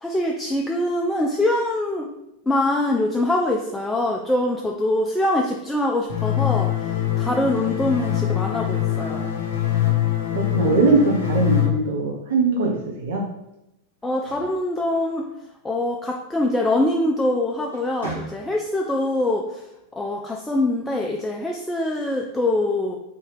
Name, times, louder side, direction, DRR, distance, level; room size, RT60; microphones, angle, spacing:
voice 1, 0.0-2.1 2.5-6.7 7.2-9.3 14.0-15.3 15.6-19.6 19.9-23.0, left 1 dB, 10° left, 0 dB, 0.3 m, -23 dB
sound 1, 6.1-11.7, left 11 dB, 55° left, 0.7 m, -23 dB
voice 2, 10.3-13.3, right 3 dB, 60° right, 0 dB, 0.5 m, -21 dB
sound 2, 14.0-15.6 17.0-17.3 17.7-18.8, right 2 dB, 80° right, 1.3 m, -39 dB
3.5 x 2.7 x 3.3 m, 0.88 s
figure-of-eight pair, 90°, 0 cm